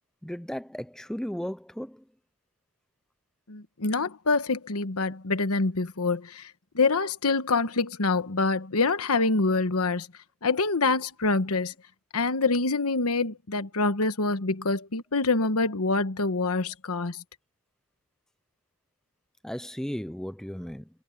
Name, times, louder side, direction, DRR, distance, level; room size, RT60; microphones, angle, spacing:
voice 1, 0.2-2.0 19.4-20.9, equal, ahead, 0.4 m, -35 dB
voice 2, 3.5-10.1 10.4-11.7 12.1-17.2, left 3 dB, 80° left, 1.3 m, -26 dB
head